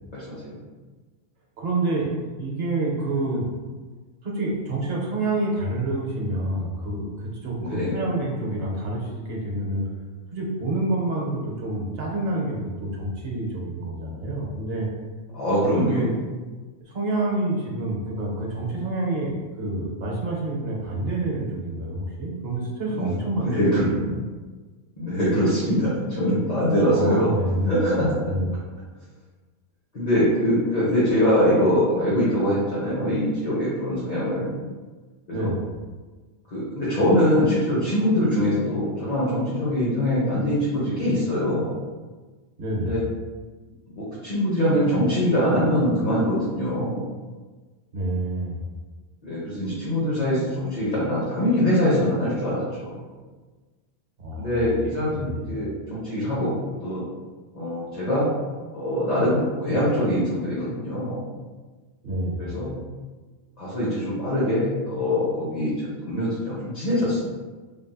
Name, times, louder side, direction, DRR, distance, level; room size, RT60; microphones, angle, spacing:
voice 1, 0.1-0.6 7.6-8.0 15.3-16.0 22.9-23.1 23.4-23.9 24.9-27.4 27.6-28.2 29.9-34.5 35.3-35.5 36.5-41.7 42.8-43.0 44.0-47.0 49.2-52.9 54.4-56.5 56.8-57.0 57.5-58.3 58.7-61.2 62.4-62.7 63.6-67.2, equal, 40° left, -9 dB, 0.7 m, -23 dB
voice 2, 1.6-3.5 4.2-9.9 10.3-14.9 15.7-16.1 16.9-23.6 24.0-24.2 26.9-27.9 28.2-28.5 35.3-35.6 42.6-43.0 47.9-48.6 54.2-54.6 55.1-55.4 62.0-62.4, right 2 dB, 60° right, -3 dB, 0.9 m, -28 dB
3.2 x 2.6 x 2.2 m, 1.3 s
omnidirectional pair, 1.3 m